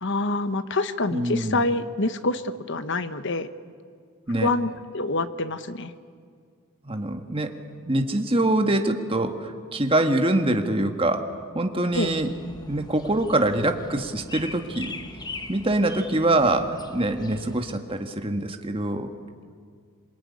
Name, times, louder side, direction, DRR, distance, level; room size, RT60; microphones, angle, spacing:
voice 1, 0.0-3.5 4.4-5.9 11.9-12.1, left 2 dB, 55° left, 11 dB, 1.2 m, -26 dB
voice 2, 1.1-1.7 4.3-4.5 6.8-7.5 7.8-11.3 11.5-12.3 12.7-14.9 15.5-19.1, right 1 dB, 25° right, 6 dB, 1.6 m, -24 dB
sound 1, 11.9-17.8, left 2 dB, 20° left, 1.2 m, -41 dB
27.0 x 23.0 x 9.7 m, 2.1 s
head